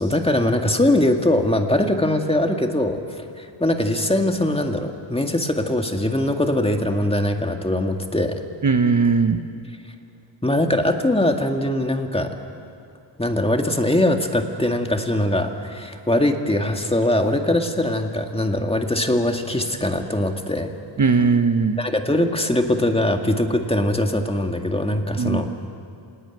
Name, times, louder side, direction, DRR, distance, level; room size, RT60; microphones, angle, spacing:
voice 1, 0.0-8.4 10.4-12.3 13.2-20.7 21.8-25.5, left 1 dB, 10° left, 4 dB, 2.0 m, -21 dB
voice 2, 8.6-9.4 21.0-21.8 25.2-25.7, right 5 dB, 40° right, 7 dB, 1.2 m, -19 dB
27.0 x 19.0 x 9.4 m, 2.4 s
cardioid pair, 95°, 46 cm